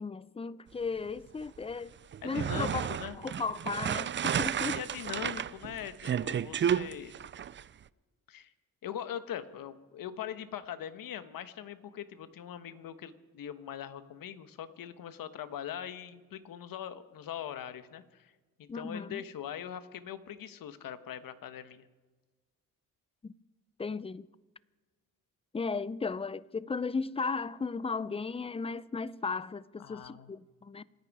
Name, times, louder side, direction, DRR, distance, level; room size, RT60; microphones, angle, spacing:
voice 1, 0.0-1.9 2.2-2.8 3.1-4.8 18.7-19.2 23.2-23.3 23.8-24.3 25.5-30.8, left 4 dB, 15° left, 0.5 m, -35 dB
sound 1, 2.1-7.6, right 9 dB, 35° right, 0.4 m, -32 dB
voice 2, 2.2-3.2 4.7-7.1 8.3-8.5 8.8-18.3 18.6-21.8 29.8-30.3, left 10 dB, 75° left, 1.3 m, -41 dB
27.0 x 10.5 x 4.9 m
cardioid pair, 85°, 35 cm